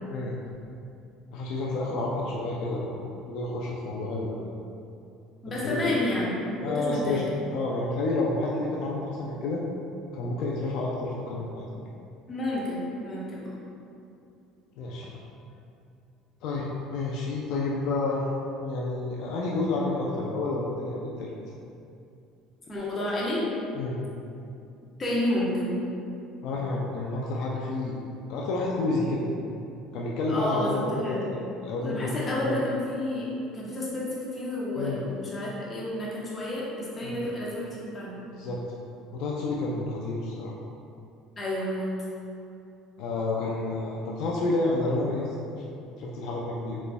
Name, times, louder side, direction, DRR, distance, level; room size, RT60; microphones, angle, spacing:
voice 1, 1.3-2.9 3.3-4.4 5.5-5.8 6.6-7.2 7.5-9.6 10.1-11.7 14.8-15.1 16.4-18.2 18.6-21.3 23.8-24.0 26.4-28.0 28.3-29.3 29.9-31.2 31.6-32.5 34.8-35.0 37.0-37.2 38.3-38.6 39.1-40.5 43.0-45.3 46.0-46.8, left 2 dB, 70° left, -3 dB, 0.4 m, -29 dB
voice 2, 5.4-6.4 6.7-7.2 12.3-13.4 22.7-23.4 25.0-25.8 30.3-31.2 31.8-33.3 33.5-38.2 41.4-41.9, left 1 dB, 25° left, -6 dB, 0.9 m, -30 dB
4.1 x 3.0 x 2.2 m, 2.6 s
supercardioid pair, 110°, 0 cm